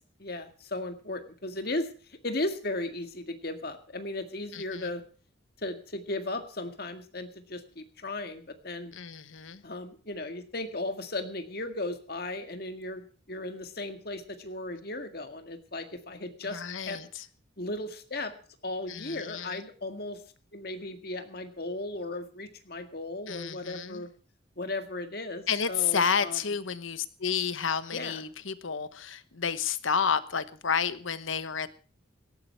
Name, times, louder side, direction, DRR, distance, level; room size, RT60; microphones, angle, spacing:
voice 1, 0.2-5.0 5.6-8.9 9.6-17.0 17.6-18.3 18.6-20.2 20.5-24.1 24.6-26.4 27.9-28.2, left 2 dB, 50° left, 7 dB, 1.9 m, -36 dB
voice 2, 4.5-4.9 8.9-9.6 16.4-17.3 18.9-19.7 23.3-24.0 25.5-31.7, left 6 dB, 80° left, 14 dB, 1.1 m, -31 dB
17.0 x 13.5 x 4.5 m, 0.39 s
head